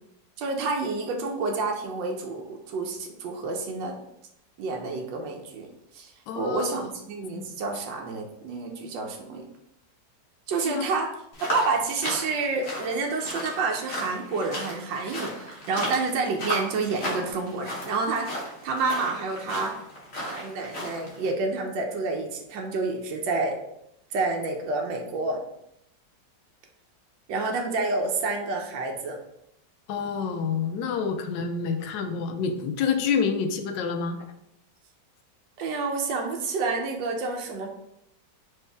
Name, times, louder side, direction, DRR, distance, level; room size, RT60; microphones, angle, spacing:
voice 1, 0.4-4.0 4.6-5.7 5.9-9.5 10.5-11.1 11.4-19.7 20.2-23.6 24.1-25.4 27.3-29.2 35.6-37.7, right 3 dB, 85° right, 2 dB, 1.4 m, -29 dB
voice 2, 6.3-6.8 7.2-7.5 10.6-10.9 29.9-34.3, left 6 dB, 80° left, 6 dB, 1.2 m, -28 dB
sound 1, 11.3-21.3, equal, 40° left, 1.2 m, -35 dB
4.5 x 3.3 x 3.4 m, 0.78 s
omnidirectional pair, 2.0 m